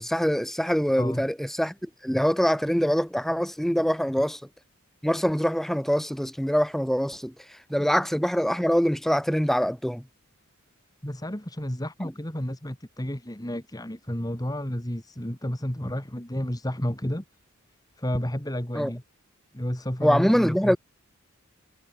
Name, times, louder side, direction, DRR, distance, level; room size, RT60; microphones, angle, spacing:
voice 1, 0.0-4.4 5.0-7.3 7.7-10.0 12.0-12.1 18.7-18.9 20.0-20.8, equal, ahead, 0.9 m, -24 dB
voice 2, 1.0-1.3 7.8-7.9 11.0-17.2 18.0-19.0 19.5-20.8, equal, 15° left, 2.1 m, -31 dB
head